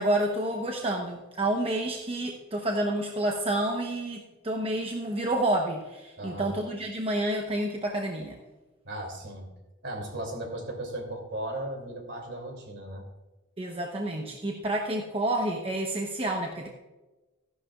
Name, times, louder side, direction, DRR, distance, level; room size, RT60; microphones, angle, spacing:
voice 1, 0.0-8.4 13.6-16.7, right 1 dB, 25° right, 1 dB, 0.9 m, -29 dB
voice 2, 6.2-6.5 8.8-9.5 9.8-13.0, right 1 dB, 55° right, 3 dB, 2.7 m, -36 dB
14.5 x 11.0 x 2.4 m, 1.1 s
head